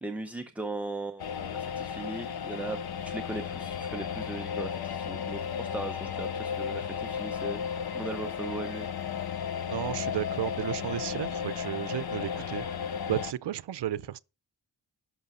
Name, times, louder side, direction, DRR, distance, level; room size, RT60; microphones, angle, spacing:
voice 1, 0.0-2.8 3.0-7.6 7.9-8.9, right 2 dB, 5° right, 0.6 m, -38 dB
sound 1, 1.2-13.3, left 7 dB, 65° left, 0.7 m, -34 dB
voice 2, 9.6-12.6 13.1-14.2, right 12 dB, 85° right, 0.6 m, -33 dB
11.5 x 6.1 x 5.4 m
wide cardioid pair, 175°, 40 cm